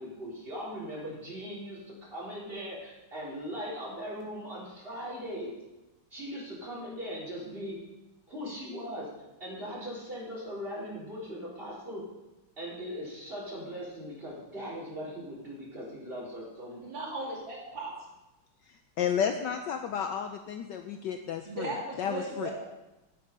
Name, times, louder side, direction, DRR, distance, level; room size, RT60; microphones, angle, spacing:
voice 1, 0.0-1.8 2.1-5.5 6.1-7.8 8.3-9.1 9.4-12.0 12.6-16.8, equal, 25° right, -6 dB, 4.2 m, -39 dB
voice 2, 16.8-17.9 21.5-22.5, right 2 dB, 60° right, -3 dB, 2.9 m, -36 dB
voice 3, 19.0-21.7 22.0-22.5, left 8 dB, 75° left, 6 dB, 1.1 m, -32 dB
8.9 x 8.3 x 5.4 m, 1.0 s
omnidirectional pair, 2.3 m